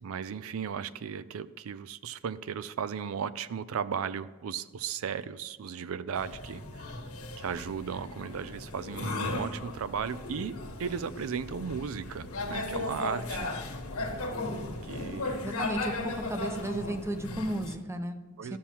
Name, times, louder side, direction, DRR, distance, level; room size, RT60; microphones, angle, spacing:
voice 1, 0.0-7.1 7.4-13.5 14.8-15.4 18.4-18.6, right 7 dB, 70° right, 16 dB, 0.4 m, -36 dB
sound 1, 6.1-17.7, left 2 dB, 90° left, 1.3 m, -36 dB
voice 2, 15.4-18.6, right 1 dB, 15° right, 8 dB, 0.6 m, -34 dB
13.0 x 7.0 x 3.0 m, 1.4 s
head